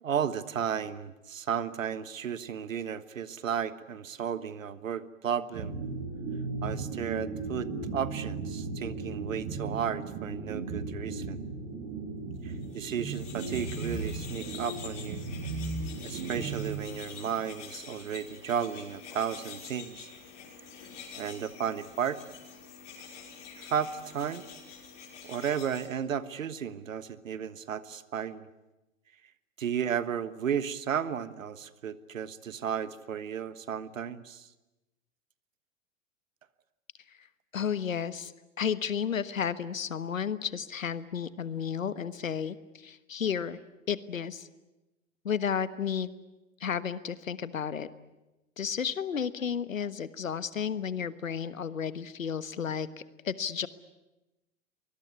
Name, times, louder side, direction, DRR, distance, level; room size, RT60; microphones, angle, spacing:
voice 1, 0.0-5.7 6.6-11.4 12.4-15.2 16.0-20.1 21.1-22.2 23.6-24.5 25.2-28.5 29.6-34.5, right 8 dB, 75° right, 15 dB, 1.4 m, -34 dB
sound 1, 5.5-17.4, right 3 dB, 50° right, 7.5 m, -36 dB
sound 2, 12.6-25.9, left 6 dB, 65° left, 6.1 m, -47 dB
voice 2, 37.5-38.3 38.6-43.6 43.9-44.5 45.2-46.1 46.6-47.9 48.6-52.9 53.2-53.7, left 7 dB, 80° left, 15 dB, 1.4 m, -32 dB
24.5 x 21.0 x 9.6 m, 1.0 s
figure-of-eight pair, 95°, 39 cm